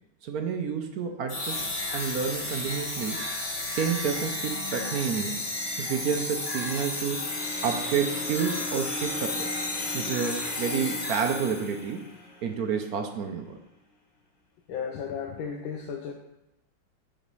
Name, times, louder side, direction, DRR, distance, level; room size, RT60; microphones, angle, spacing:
voice 1, 0.2-1.6 1.9-3.3 3.7-5.4 5.8-9.5 9.9-12.0 12.4-13.6, right 6 dB, 65° right, 5 dB, 1.0 m, -30 dB
sound 1, 1.3-11.8, left 2 dB, 25° left, 1.4 m, -33 dB
sound 2, 5.1-13.3, left 1 dB, 65° left, 2.1 m, -40 dB
voice 2, 14.7-16.1, left 7 dB, 85° left, 2 dB, 1.5 m, -34 dB
7.2 x 5.1 x 5.4 m, 0.94 s
omnidirectional pair, 2.1 m